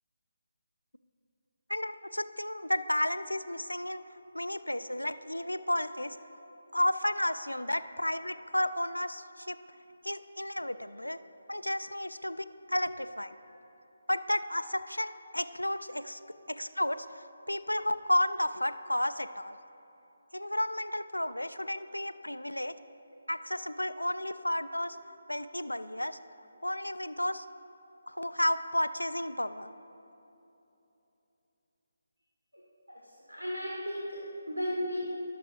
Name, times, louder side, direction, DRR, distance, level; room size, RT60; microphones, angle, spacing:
voice 1, 1.7-4.0 4.3-6.2 6.7-9.6 10.0-11.2 11.5-13.3 14.1-16.2 16.5-19.5 20.3-22.7 23.3-25.0 25.3-26.2 26.6-27.5 28.1-29.7, left 1 dB, 85° left, 11 dB, 0.3 m, -32 dB
voice 2, 32.9-34.2 34.5-35.0, equal, 80° right, -4 dB, 1.5 m, -35 dB
17.5 x 6.7 x 2.5 m, 3.0 s
figure-of-eight pair, 150°, 0 cm